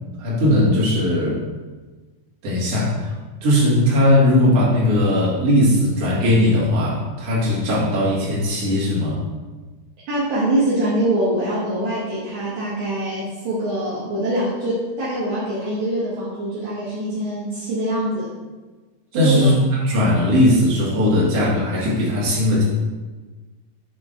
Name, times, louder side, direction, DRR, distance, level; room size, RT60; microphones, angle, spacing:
voice 1, 0.2-1.4 2.4-3.1 3.4-9.2 19.1-22.6, left 1 dB, 50° right, -7 dB, 1.8 m, -18 dB
voice 2, 10.1-18.3 19.1-19.5, right 1 dB, 70° right, -10 dB, 1.7 m, -23 dB
8.1 x 3.8 x 3.7 m, 1.3 s
omnidirectional pair, 5.3 m